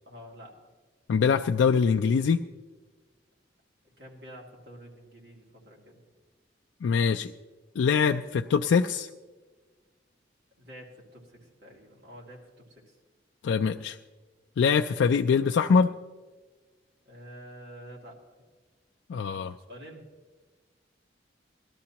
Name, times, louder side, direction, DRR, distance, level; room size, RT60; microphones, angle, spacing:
voice 1, 0.1-0.5 4.0-6.0 10.6-13.0 17.0-18.2 19.6-20.0, equal, 60° right, -2 dB, 2.4 m, -48 dB
voice 2, 1.1-2.4 6.8-7.3 7.8-9.1 13.4-14.0 14.6-15.9 19.1-19.5, left 6 dB, 85° left, 4 dB, 0.3 m, -23 dB
18.5 x 12.5 x 2.9 m, 1.3 s
head